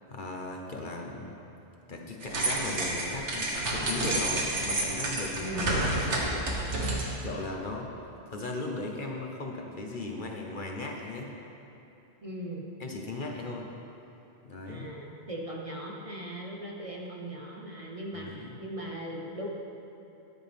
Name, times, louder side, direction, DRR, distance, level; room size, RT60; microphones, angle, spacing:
voice 1, 0.1-1.3 1.9-6.8 7.2-7.9 8.3-11.3 12.8-13.7 14.4-14.9 18.1-18.6, left 2 dB, 45° left, 0 dB, 1.1 m, -37 dB
sound 1, 2.2-7.3, right 1 dB, 80° right, 1.8 m, -30 dB
voice 2, 5.4-5.8 12.2-12.7 14.7-19.5, equal, 30° right, -2 dB, 1.0 m, -38 dB
13.5 x 10.5 x 3.5 m, 2.9 s
omnidirectional pair, 1.2 m